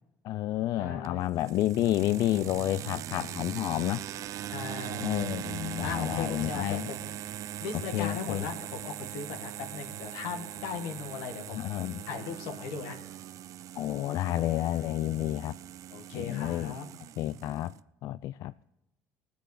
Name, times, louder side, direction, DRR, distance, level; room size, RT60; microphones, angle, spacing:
voice 1, 0.2-4.0 5.0-6.8 7.9-8.4 11.5-12.0 13.8-15.6 16.1-16.7 17.2-17.7 18.0-18.5, left 14 dB, 65° left, 0.3 m, -30 dB
voice 2, 0.8-1.2 4.5-5.2 5.8-7.1 7.6-11.6 12.1-13.0 15.9-16.9, left 5 dB, 90° left, 1.7 m, -38 dB
sound 1, 1.0-17.8, right 12 dB, 55° right, 0.4 m, -40 dB
19.0 x 8.0 x 4.9 m
cardioid pair, 100°, 7 cm